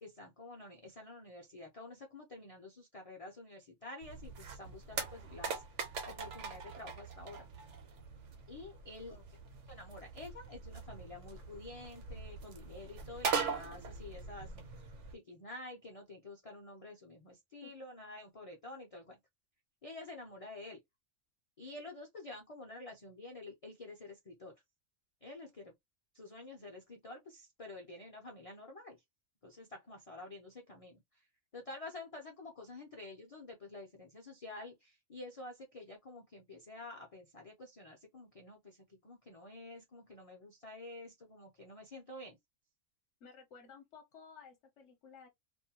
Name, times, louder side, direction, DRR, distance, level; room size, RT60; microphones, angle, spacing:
voice 1, 0.0-7.5 8.5-9.2 9.7-14.8 15.1-19.2 19.8-20.8 21.6-24.5 25.2-25.7 26.1-29.0 29.4-31.2 31.5-42.4, left 2 dB, 40° left, 0.5 m, -49 dB
sound 1, 4.0-15.2, right 5 dB, 70° right, 1.0 m, -42 dB
voice 2, 43.2-45.3, left 6 dB, 65° left, 1.0 m, -55 dB
2.6 x 2.2 x 2.8 m
omnidirectional pair, 1.3 m